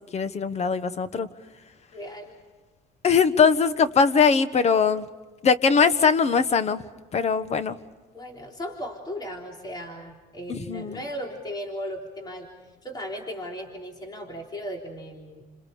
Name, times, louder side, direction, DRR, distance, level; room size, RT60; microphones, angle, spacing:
voice 1, 0.1-1.3 3.0-5.0 5.4-6.8 7.1-7.8 10.5-11.0, left 5 dB, 40° left, 13 dB, 1.4 m, -21 dB
voice 2, 1.9-2.3 8.1-15.4, equal, 25° left, 1 dB, 3.7 m, -36 dB
30.0 x 27.5 x 5.1 m, 1.3 s
cardioid pair, 110°, 17 cm